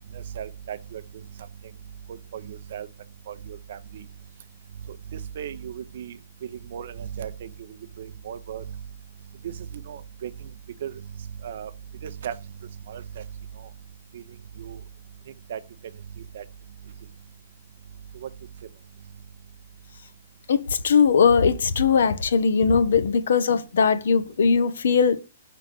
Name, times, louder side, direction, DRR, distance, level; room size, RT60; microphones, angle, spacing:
voice 1, 0.4-1.0 2.3-2.9 3.3-4.0 5.4-6.2 6.7-7.5 8.0-8.6 9.4-9.5 9.9-10.3 10.8-10.9 11.4-11.7 12.0-12.3 12.9-13.0 14.1-14.2 14.6-14.8 15.5-15.6 16.3-16.4 18.2-18.3, right 9 dB, 60° right, 0.7 m, -36 dB
voice 2, 20.5-25.2, left 6 dB, 70° left, 0.8 m, -20 dB
4.9 x 4.0 x 5.8 m
hypercardioid pair, 135°, 0 cm